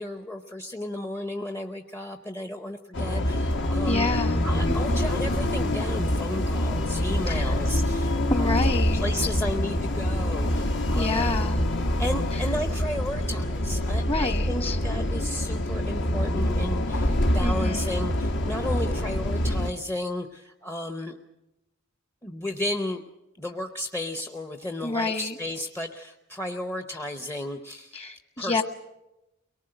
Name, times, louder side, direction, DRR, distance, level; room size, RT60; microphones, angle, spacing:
voice 1, 0.0-4.1 4.4-8.5 8.9-11.4 12.0-21.2 22.2-23.0 23.4-28.0 28.4-28.6, left 1 dB, 10° left, 5 dB, 0.8 m, -33 dB
sound 1, 2.9-19.7, left 1 dB, 60° left, 1.4 m, -25 dB
voice 2, 3.8-5.0 7.3-7.5 8.3-9.0 10.9-11.6 14.1-14.8 17.4-18.0 24.8-25.3 27.9-28.6, left 2 dB, 30° left, 9 dB, 1.4 m, -29 dB
23.0 x 19.0 x 7.8 m, 0.95 s
head